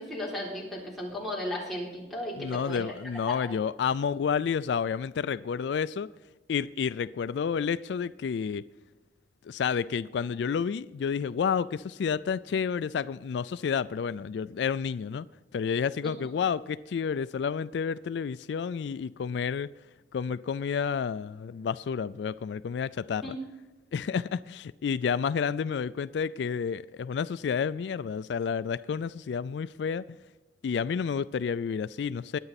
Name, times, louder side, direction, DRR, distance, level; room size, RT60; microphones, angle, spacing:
voice 1, 0.0-2.9 3.3-3.4 16.0-16.1 23.2-23.4, left 1 dB, ahead, 3.8 m, -35 dB
voice 2, 2.4-6.1 6.5-8.6 9.4-15.3 15.5-19.7 20.1-23.3 23.9-30.2 30.6-32.4, left 6 dB, 70° left, 0.3 m, -30 dB
21.5 x 8.9 x 4.1 m
head